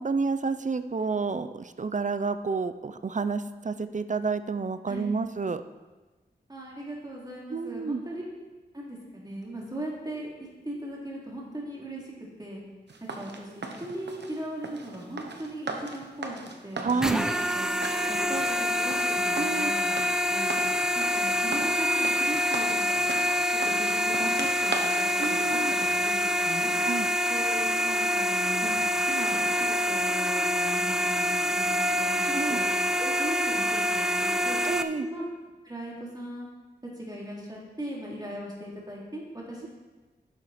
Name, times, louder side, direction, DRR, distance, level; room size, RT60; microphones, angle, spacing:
voice 1, 0.0-5.6 7.5-8.0 16.8-17.3 19.4-19.7 25.2-25.7 26.7-27.1 32.4-32.6 34.6-35.1, right 4 dB, 45° right, 11 dB, 0.6 m, -29 dB
voice 2, 6.5-8.2 8.7-12.1 12.4-12.6 13.1-16.4 16.6-16.9 17.5-20.0 20.3-20.5 20.9-23.1 23.6-26.7 27.3-34.6 35.0-35.2 35.6-36.5 37.0-39.2 39.5-39.7, right 1 dB, 20° right, -4 dB, 3.1 m, -38 dB
sound 1, 12.9-26.1, right 3 dB, 80° right, 1.1 m, -38 dB
sound 2, 17.0-34.8, left 1 dB, 5° right, 0.6 m, -26 dB
11.5 x 7.4 x 4.3 m, 1.2 s
wide cardioid pair, 60°, 18 cm